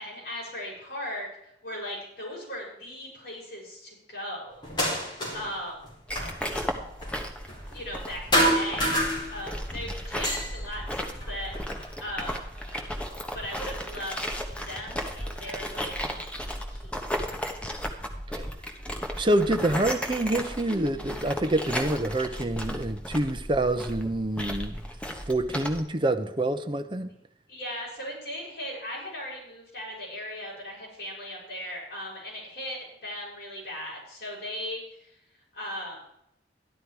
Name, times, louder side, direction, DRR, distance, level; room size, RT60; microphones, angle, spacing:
voice 1, 0.0-4.6 5.3-5.8 7.7-11.7 12.0-12.4 13.3-15.9 16.7-16.9 27.5-35.1 35.5-36.0, equal, 55° left, -4 dB, 6.5 m, -38 dB
sound 1, 4.6-5.6 5.8-8.1 8.3-9.7 10.0-11.9 12.6-13.5 14.4-14.5 15.1-16.2, equal, 25° left, 4.5 m, -29 dB
sound 2, 6.1-25.8, equal, 5° left, 1.1 m, -35 dB
voice 2, 19.2-24.8 25.3-27.1, right 1 dB, 25° right, 9 dB, 0.7 m, -27 dB
13.0 x 11.5 x 4.6 m, 0.78 s
head